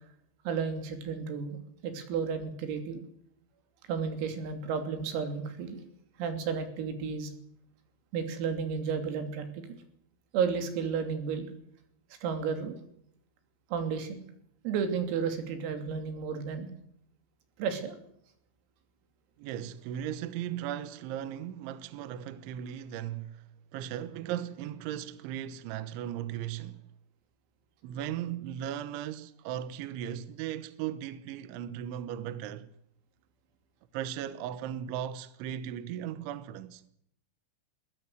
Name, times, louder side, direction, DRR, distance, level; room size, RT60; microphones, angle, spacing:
voice 1, 0.5-1.6 1.8-3.0 3.9-5.8 6.2-7.3 8.1-9.4 10.3-11.5 12.2-12.8 13.7-14.2 14.7-16.7 17.6-18.0, right 6 dB, 90° right, 5.7 m, -32 dB
voice 2, 19.4-23.4 23.7-26.8 27.8-32.7 33.9-36.8, right 10 dB, 75° right, 3.3 m, -37 dB
21.0 x 18.5 x 8.0 m
omnidirectional pair, 5.9 m